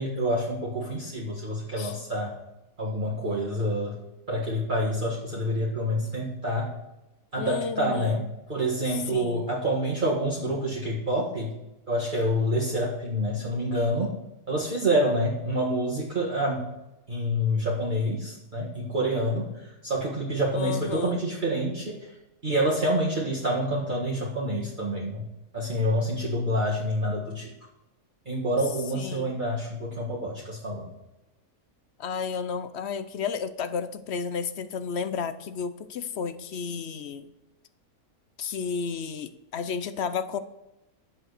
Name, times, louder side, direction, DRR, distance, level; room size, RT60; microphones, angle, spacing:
voice 1, 0.0-2.3 2.8-4.0 4.3-6.7 7.3-8.2 8.5-11.5 11.9-14.2 14.5-16.6 17.1-22.1 22.4-25.2 25.5-27.5 28.2-30.9, equal, 30° right, -4 dB, 1.9 m, -27 dB
voice 2, 7.4-8.3 8.9-9.5 20.5-21.2 28.9-29.4 32.0-37.3 38.4-40.4, left 6 dB, 55° left, 12 dB, 0.8 m, -32 dB
10.0 x 7.5 x 6.6 m, 0.94 s
omnidirectional pair, 1.6 m